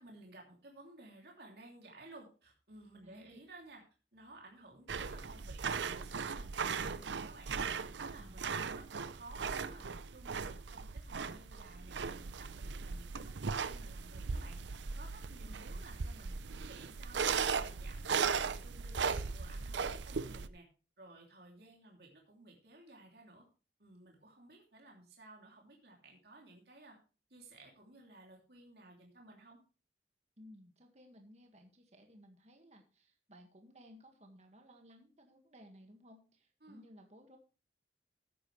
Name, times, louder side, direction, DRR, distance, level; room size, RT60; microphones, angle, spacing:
voice 1, 0.0-3.8 4.1-7.6 8.0-9.8 10.1-12.0 12.4-14.6 14.9-16.4 16.7-20.7 21.0-23.5 23.8-27.0 27.3-29.6 36.6-36.9, right 2 dB, 60° right, 0 dB, 2.9 m, -56 dB
voice 2, 3.0-3.4 8.2-8.9 15.4-15.9 30.4-37.4, equal, 40° right, 4 dB, 1.8 m, -59 dB
sound 1, 4.9-20.5, right 5 dB, 85° right, 0.6 m, -38 dB
14.0 x 9.9 x 3.2 m, 0.35 s
head